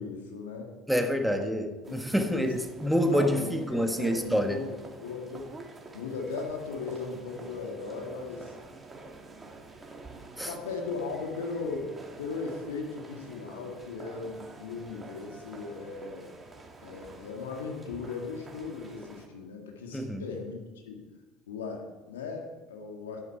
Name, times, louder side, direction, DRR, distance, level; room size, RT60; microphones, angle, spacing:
voice 1, 0.0-0.8 1.3-1.5 2.0-2.5 2.9-3.5 4.0-4.7 5.0-5.5 5.9-8.5 10.5-16.3 16.8-20.6 20.8-21.1 21.5-23.2, left 4 dB, 80° left, 1 dB, 1.9 m, -37 dB
voice 2, 0.9-4.6 10.4-10.5 19.9-20.2, equal, ahead, 5 dB, 1.4 m, -27 dB
sound 1, 1.8-19.3, right 3 dB, 20° right, 2.1 m, -48 dB
11.0 x 9.6 x 4.5 m, 1.2 s
hypercardioid pair, 70°, 0 cm